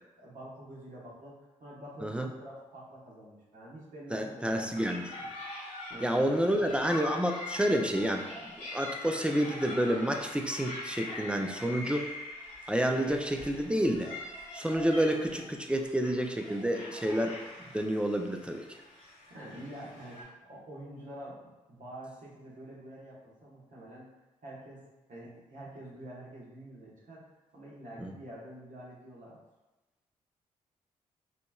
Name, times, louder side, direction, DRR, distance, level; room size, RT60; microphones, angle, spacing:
voice 1, 0.2-1.3 1.6-4.7 5.9-6.4 19.3-24.1 24.4-24.8 25.1-27.2 27.5-29.4, right 1 dB, 55° right, -6 dB, 1.5 m, -47 dB
voice 2, 4.1-5.3 6.0-12.1 12.7-14.1 14.5-17.4 17.7-18.6 28.0-28.2, equal, 5° right, 4 dB, 0.6 m, -29 dB
sound 1, 4.7-20.2, left 1 dB, 85° left, 1.2 m, -43 dB
5.1 x 2.9 x 2.4 m, 1.1 s
hypercardioid pair, 45°, 16 cm